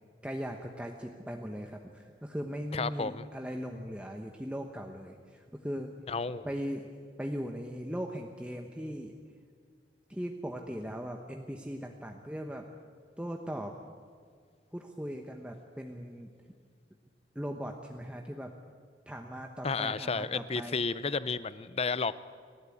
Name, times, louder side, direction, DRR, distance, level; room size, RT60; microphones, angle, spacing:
voice 1, 0.2-5.9 6.4-6.9 7.2-9.1 10.1-12.7 13.2-13.7 14.7-16.3 17.3-18.5 19.1-20.8, equal, 5° right, 2 dB, 1.1 m, -39 dB
voice 2, 2.7-3.3 6.1-6.5 19.6-22.2, left 4 dB, 35° left, 16 dB, 0.6 m, -32 dB
29.5 x 12.5 x 8.6 m, 2.1 s
head